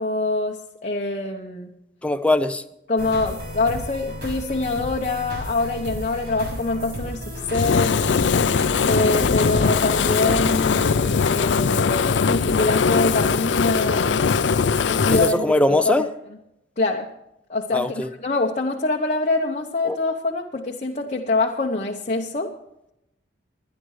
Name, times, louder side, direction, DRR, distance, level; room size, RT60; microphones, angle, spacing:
voice 1, 0.0-1.7 2.9-8.0 8.9-14.2 14.8-16.4 16.8-17.1 17.5-22.5, left 2 dB, 40° left, 1 dB, 0.9 m, -25 dB
voice 2, 2.0-2.6 9.2-9.3 15.1-16.1 17.7-18.1 19.9-20.0, left 1 dB, 5° left, 10 dB, 0.5 m, -21 dB
sound 1, 3.0-11.2, left 1 dB, 60° right, 6.5 m, -33 dB
Fire, 7.5-15.4, left 5 dB, 80° left, 0.5 m, -20 dB
23.5 x 10.5 x 3.2 m, 0.84 s
head